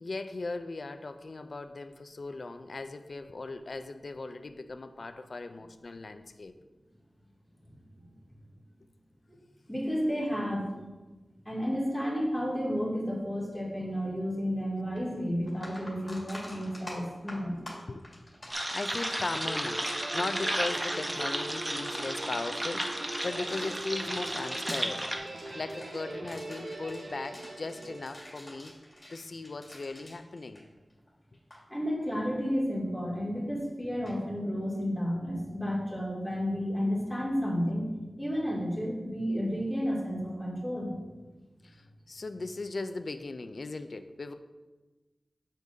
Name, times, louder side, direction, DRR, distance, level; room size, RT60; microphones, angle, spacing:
voice 1, 0.0-6.6 17.9-18.0 18.7-25.1 25.3-28.7 29.1-30.6 41.6-44.3, left 3 dB, 60° left, 9 dB, 0.4 m, -38 dB
voice 2, 9.7-10.9 11.4-17.6 31.7-37.9 38.2-41.0, equal, 5° left, -6 dB, 2.5 m, -31 dB
sound 1, 15.0-15.1 15.4-31.1 31.3-31.6 34.0-34.2, left 1 dB, 30° left, 2.0 m, -48 dB
sound 2, 18.5-25.2, right 1 dB, 20° right, 0.8 m, -33 dB
Guitar, 19.4-28.8, right 2 dB, 60° right, 0.8 m, -42 dB
8.3 x 6.6 x 2.7 m, 1.2 s
wide cardioid pair, 75°, 0 cm